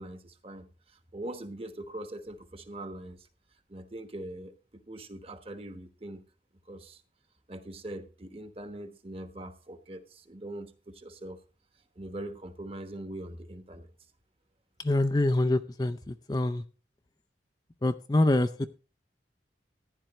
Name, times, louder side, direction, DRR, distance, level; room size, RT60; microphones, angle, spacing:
voice 1, 0.0-3.3 3.7-4.5 4.9-6.2 6.7-7.0 7.5-11.4 12.0-13.9, right 1 dB, 30° right, 10 dB, 1.1 m, -42 dB
voice 2, 14.8-16.6 17.8-18.7, left 2 dB, 20° left, 10 dB, 0.5 m, -26 dB
14.5 x 10.5 x 3.1 m, 0.34 s
head